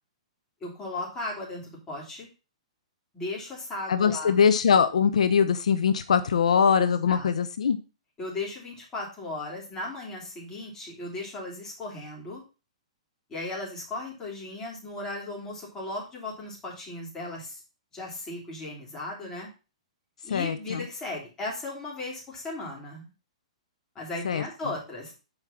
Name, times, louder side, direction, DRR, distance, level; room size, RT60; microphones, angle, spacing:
voice 1, 0.6-2.3 3.1-4.4 6.8-7.3 8.2-12.4 13.3-17.6 17.9-19.5 20.2-23.1 24.0-25.1, left 2 dB, 15° left, -3 dB, 3.5 m, -36 dB
voice 2, 3.9-7.8 20.3-20.8 24.2-24.4, left 6 dB, 85° left, 11 dB, 0.7 m, -22 dB
6.5 x 4.8 x 5.8 m, 0.31 s
hypercardioid pair, 150°, 4 cm